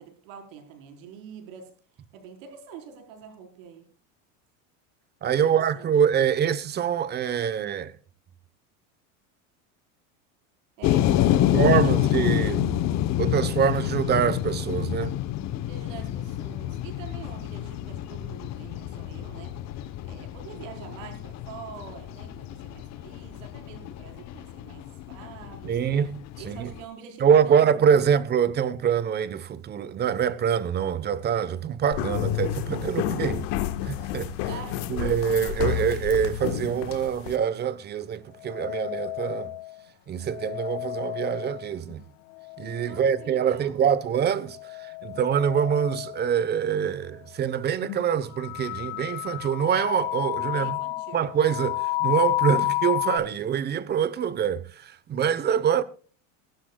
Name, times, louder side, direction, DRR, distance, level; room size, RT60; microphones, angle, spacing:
voice 1, 0.0-1.7 2.1-3.9 5.2-5.9 10.8-12.5 15.6-25.8 26.4-28.0 34.5-35.1 42.8-43.8 50.5-51.2, right 7 dB, 75° right, 4.7 m, -45 dB
voice 2, 5.2-7.9 11.5-12.7 13.2-15.2 25.6-26.7 27.2-33.4 33.8-34.3 34.9-39.5 40.1-42.0 42.6-50.8 51.1-55.8, right 8 dB, 25° right, 1.0 m, -25 dB
sound 1, 10.8-26.8, left 12 dB, 45° left, 1.1 m, -28 dB
sound 2, 31.9-37.4, left 11 dB, 60° left, 1.5 m, -30 dB
sound 3, 38.4-39.7 40.3-41.9 42.4-43.5 44.5-46.2 46.8-46.9 47.8-48.0 48.3-53.2, left 19 dB, 75° left, 1.7 m, -31 dB
22.5 x 12.0 x 2.3 m
supercardioid pair, 135°, 38 cm